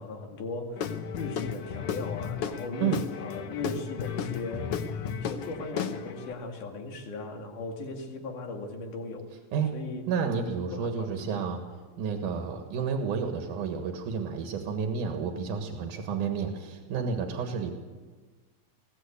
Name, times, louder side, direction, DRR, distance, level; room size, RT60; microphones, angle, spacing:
voice 1, 0.0-4.9 5.2-9.2 9.7-10.0 10.7-11.5, left 3 dB, 85° left, 2 dB, 3.7 m, -38 dB
Guitar / Drum, 0.8-6.3, left 7 dB, 60° left, 1.7 m, -34 dB
voice 2, 10.1-11.6 12.0-17.7, right 6 dB, 85° right, 5 dB, 3.1 m, -30 dB
21.5 x 16.0 x 8.5 m, 1.4 s
omnidirectional pair, 3.5 m